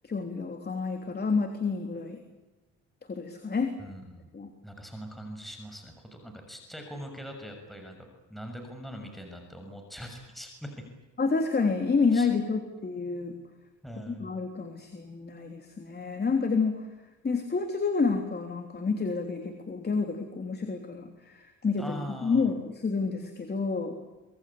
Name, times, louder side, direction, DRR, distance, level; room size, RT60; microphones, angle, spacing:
voice 1, 0.0-2.2 3.1-3.7 4.3-4.5 11.2-13.3 14.1-16.8 17.2-21.9 22.2-24.0, left 4 dB, 35° left, 4 dB, 3.5 m, -29 dB
voice 2, 3.8-4.3 4.6-8.0 8.3-10.8 12.1-12.3 13.8-14.3 21.8-22.5, equal, ahead, 3 dB, 6.6 m, -42 dB
26.0 x 21.0 x 8.6 m, 1.2 s
cardioid pair, 90°, 30 cm